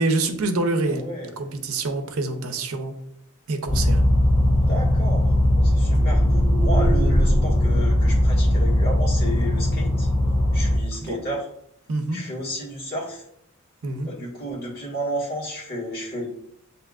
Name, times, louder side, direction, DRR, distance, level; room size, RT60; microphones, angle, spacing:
voice 1, 0.0-1.1 1.4-2.9 3.5-4.0 5.9-6.1 11.0-11.2 11.9-12.2 13.8-14.1, right 2 dB, 80° right, 6 dB, 0.6 m, -26 dB
voice 2, 0.9-1.3 4.5-6.2 6.6-10.1 10.5-11.5 12.1-13.2 14.0-16.3, equal, 45° left, -5 dB, 1.6 m, -32 dB
sound 1, 3.7-10.8, left 1 dB, 15° left, 1.4 m, -19 dB
7.6 x 2.8 x 2.4 m, 0.75 s
head